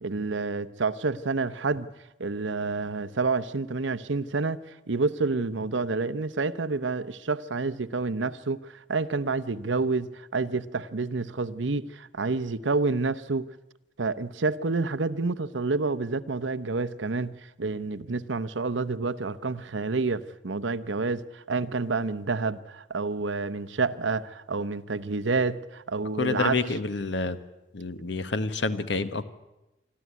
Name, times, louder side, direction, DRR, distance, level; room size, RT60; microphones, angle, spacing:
voice 1, 0.0-1.9 2.2-4.6 4.9-13.5 14.0-26.6, right 3 dB, 80° right, 0.9 m, -29 dB
voice 2, 26.2-27.4 27.7-29.2, left 3 dB, 70° left, 1.2 m, -28 dB
25.0 x 13.5 x 9.5 m
head